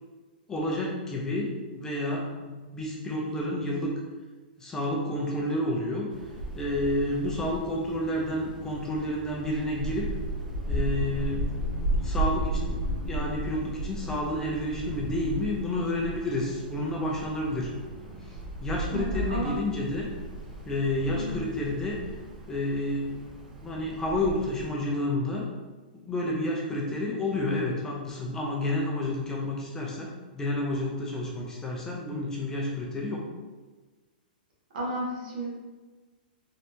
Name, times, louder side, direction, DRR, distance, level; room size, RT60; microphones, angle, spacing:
voice 1, 0.5-3.9 4.6-6.1 6.6-10.1 10.7-11.7 12.0-17.7 18.2-20.1 20.7-22.0 22.5-23.3 23.6-25.5 25.9-33.3, left 1 dB, 10° left, -3 dB, 0.4 m, -30 dB
Wind, 6.1-24.7, right 1 dB, 90° right, 1.0 m, -35 dB
voice 2, 18.9-19.7 21.1-21.4 34.7-35.5, right 1 dB, 65° right, -4 dB, 1.3 m, -33 dB
3.3 x 2.8 x 2.7 m, 1.3 s
hypercardioid pair, 155°, 5 cm